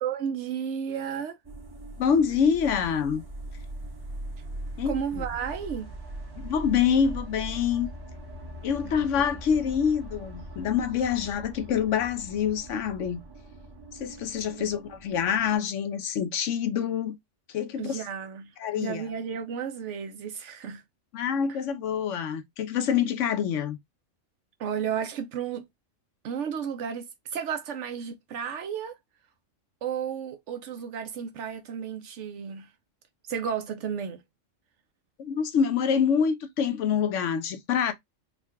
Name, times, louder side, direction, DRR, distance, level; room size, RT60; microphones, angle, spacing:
voice 1, 0.0-1.4 4.9-5.9 8.8-9.1 9.5-9.6 14.6-14.7 17.8-20.8 21.5-21.6 24.6-25.7 26.2-29.0 29.8-32.7 33.3-34.2, right 7 dB, 75° right, 0.9 m, -33 dB
sound 1, 1.4-15.6, right 1 dB, 20° right, 0.9 m, -41 dB
voice 2, 2.0-3.2 4.8-5.2 6.4-7.9 8.6-13.2 13.9-17.2 17.5-18.0 18.6-19.0 21.1-23.8 35.2-37.9, left 7 dB, 80° left, 1.0 m, -26 dB
3.7 x 2.2 x 3.4 m
omnidirectional pair, 1.3 m